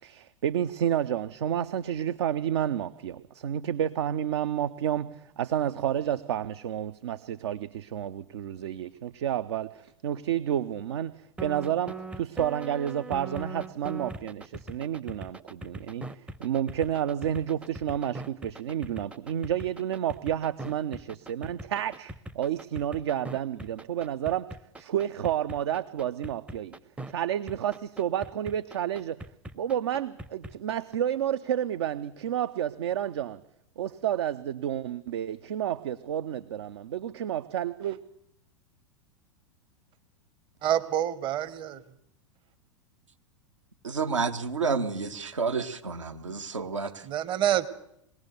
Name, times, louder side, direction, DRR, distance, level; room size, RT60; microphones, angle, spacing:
voice 1, 0.0-24.5 24.8-26.7 27.1-29.2 29.5-33.4 33.8-38.0, right 10 dB, 60° right, 0.7 m, -30 dB
sound 1, 11.4-27.1 27.5-31.0, right 2 dB, 5° right, 0.7 m, -40 dB
voice 2, 40.6-41.8 47.0-47.7, right 11 dB, 30° right, 1.0 m, -27 dB
voice 3, 43.8-47.1, right 5 dB, 75° right, 1.6 m, -30 dB
22.0 x 18.0 x 6.8 m
figure-of-eight pair, 90°, 16 cm